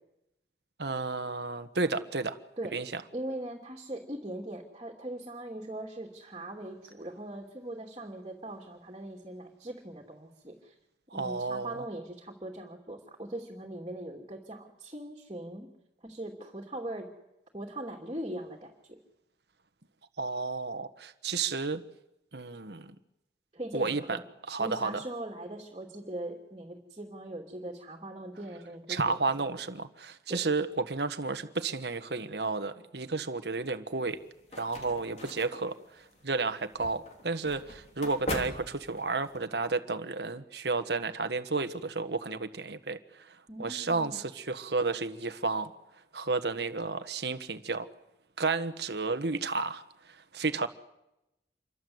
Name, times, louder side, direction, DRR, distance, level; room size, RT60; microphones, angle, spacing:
voice 1, 0.8-2.4 2.7-3.0 11.1-11.8 20.2-21.8 22.3-22.9 23.7-24.2 24.5-25.0 28.9-34.2 34.6-35.8 36.2-43.0 43.3-45.7 46.1-47.9 48.4-49.8 50.3-50.7, right 3 dB, 75° right, 9 dB, 1.4 m, -32 dB
voice 2, 3.1-10.7 11.1-15.7 16.0-17.1 17.5-19.0 23.5-24.2 24.6-29.3 30.3-30.4 43.5-44.2, right 1 dB, 30° right, -1 dB, 2.8 m, -40 dB
sound 1, 34.1-39.4, left 1 dB, 40° left, 3.4 m, -41 dB
27.5 x 23.5 x 8.0 m, 0.89 s
head